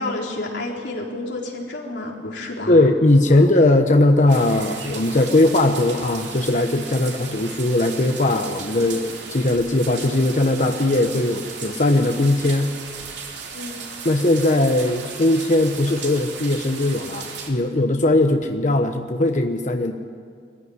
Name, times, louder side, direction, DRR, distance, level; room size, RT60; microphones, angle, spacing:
voice 1, 0.0-2.8 3.3-3.4 6.9-7.1 13.5-13.8, left 2 dB, 70° left, -2 dB, 4.0 m, -30 dB
voice 2, 2.7-12.8 14.0-19.9, left 2 dB, 45° left, 4 dB, 1.0 m, -19 dB
sound 1, 4.3-17.5, right 5 dB, 70° right, 3.0 m, -36 dB
21.5 x 15.5 x 9.7 m, 2.1 s
head